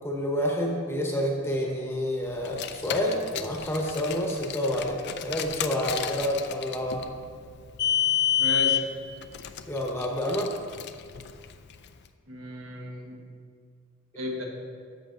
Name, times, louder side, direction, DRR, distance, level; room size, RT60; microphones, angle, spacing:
voice 1, 0.0-7.1 9.7-10.5, equal, 10° left, -1 dB, 1.0 m, -28 dB
Car, 2.4-11.9, left 9 dB, 55° left, 0.4 m, -30 dB
voice 2, 8.4-8.9 12.3-13.2 14.2-14.4, left 1 dB, 75° right, 0 dB, 1.2 m, -33 dB
12.5 x 7.3 x 2.6 m, 2.1 s
head